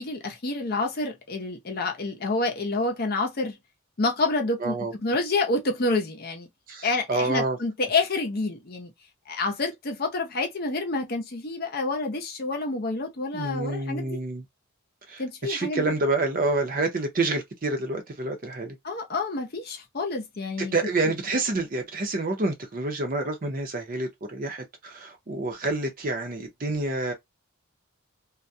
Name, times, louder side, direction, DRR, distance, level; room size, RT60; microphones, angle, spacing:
voice 1, 0.0-3.6 4.0-6.5 6.8-8.9 9.3-14.2 15.2-15.9 18.8-20.7, left 3 dB, 45° left, 0.6 m, -28 dB
voice 2, 4.6-4.9 6.7-7.6 13.3-14.4 15.1-18.8 20.6-27.1, right 2 dB, 40° right, 0.6 m, -28 dB
2.3 x 2.1 x 2.6 m
head